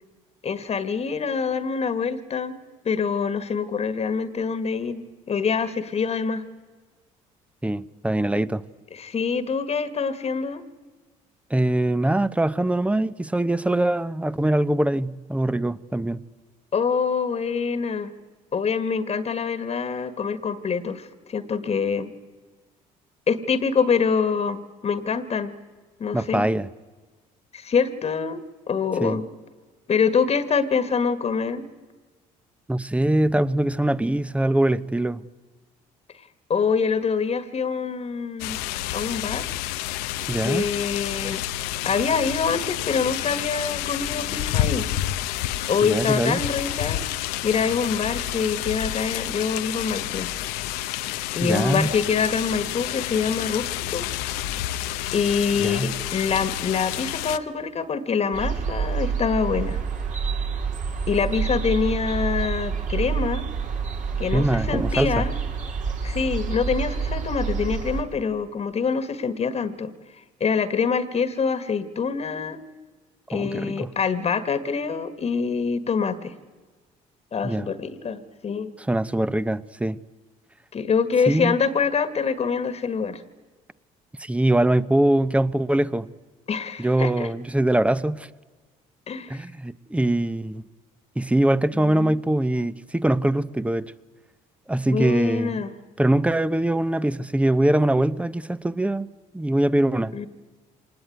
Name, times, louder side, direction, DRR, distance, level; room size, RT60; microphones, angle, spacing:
voice 1, 0.4-2.5 2.8-6.4 8.9-10.6 16.7-18.1 18.5-22.1 23.3-25.5 26.0-26.5 27.5-29.3 29.9-31.6 36.5-38.6 38.9-39.4 40.4-41.4 41.8-44.9 45.7-47.0 47.4-50.3 51.3-54.1 55.1-59.8 61.1-63.4 64.2-65.3 66.0-69.9 70.4-72.6 73.3-76.3 77.3-78.7 80.7-83.2 86.5-87.3 89.1-89.4 91.7-92.2 94.9-95.7 100.1-100.3, left 5 dB, 40° left, 13 dB, 1.6 m, -25 dB
voice 2, 7.6-8.6 11.5-16.2 26.1-26.7 29.0-29.2 32.7-35.2 40.3-40.6 45.8-46.4 51.4-51.9 55.6-55.9 64.3-65.2 73.3-73.9 77.4-77.7 78.8-80.0 81.3-81.6 84.2-86.1 86.8-88.3 89.3-90.6 91.2-93.9 94.7-95.6 96.0-99.1 99.3-100.1, right 1 dB, 10° right, 16 dB, 0.9 m, -23 dB
sound 1, 38.4-57.4, left 13 dB, 90° left, 0.8 m, -29 dB
sound 2, 58.3-68.0, right 5 dB, 55° right, 3.8 m, -28 dB
25.0 x 19.5 x 9.3 m, 1.4 s
supercardioid pair, 85°, 16 cm